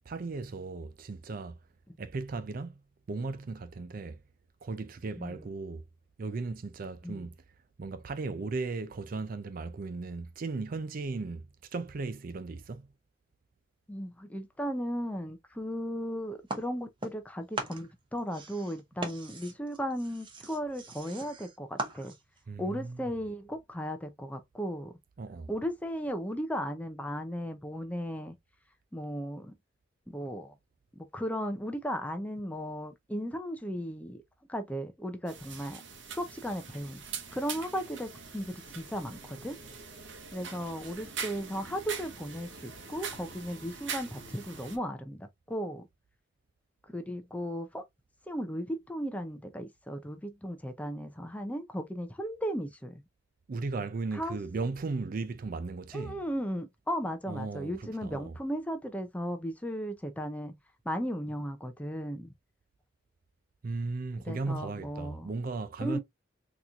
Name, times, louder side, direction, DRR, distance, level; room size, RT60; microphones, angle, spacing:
voice 1, 0.1-1.6 2.0-2.8 3.1-4.2 4.6-5.8 6.2-7.3 7.8-12.9 22.5-23.1 25.2-25.5 53.5-56.2 57.3-58.4 63.6-66.0, right 3 dB, 50° right, 0.4 m, -36 dB
voice 2, 13.9-22.1 22.6-24.9 25.5-28.3 28.9-29.5 30.1-30.5 30.9-34.2 34.5-35.8 36.1-37.0 37.3-39.6 40.3-45.9 46.9-47.8 48.3-53.0 54.1-54.4 55.9-60.6 60.9-62.3 64.3-65.3 65.8-66.0, equal, 10° left, 0.5 m, -36 dB
sound 1, 16.5-17.3 17.5-22.4, right 2 dB, 25° right, 0.8 m, -40 dB
sound 2, 35.3-44.8, right 5 dB, 70° right, 0.9 m, -43 dB
4.0 x 2.9 x 2.3 m
head